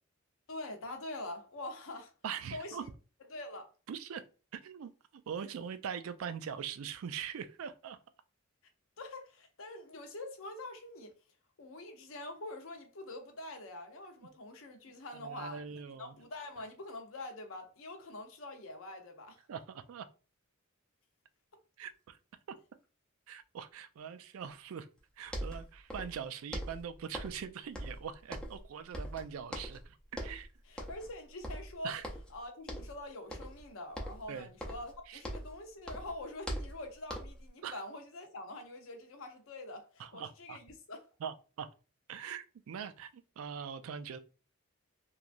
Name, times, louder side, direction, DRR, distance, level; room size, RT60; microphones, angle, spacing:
voice 1, 0.5-2.1 2.5-2.9 3.3-3.7 9.0-11.1 11.6-19.4 30.7-31.9 32.3-41.1, left 2 dB, 70° left, 0.7 m, -45 dB
voice 2, 2.2-2.8 3.9-4.2 4.5-4.9 5.3-8.0 15.1-16.2 19.5-20.1 21.8-22.2 23.3-24.9 25.2-30.5 31.8-32.0 34.3-34.5 35.1-35.2 37.6-37.8 40.0-40.6 41.2-41.7 42.1-44.2, right 7 dB, 80° right, 0.4 m, -42 dB
sound 1, 25.0-25.1 25.3-26.2 26.5-27.5 27.7-28.7 28.9-29.8 30.1-30.4 30.8-31.1 31.4-32.4 32.7-33.0 33.3-33.6 33.9-35.6 35.8-37.5, equal, 5° left, 0.5 m, -41 dB
3.0 x 2.3 x 2.5 m
head